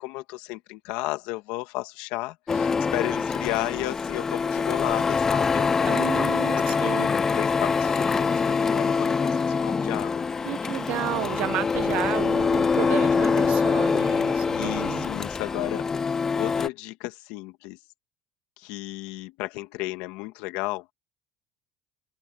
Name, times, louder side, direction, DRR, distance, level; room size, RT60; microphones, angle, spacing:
voice 1, 0.0-10.2 14.5-15.9 16.3-17.8 18.6-20.9, left 20 dB, 80° left, 1.7 m, -34 dB
Printer, 2.5-16.7, left 5 dB, 20° left, 0.3 m, -24 dB
voice 2, 5.9-7.1 10.4-15.1, right 16 dB, 65° right, 1.1 m, -32 dB
cardioid pair, 120°, 2 cm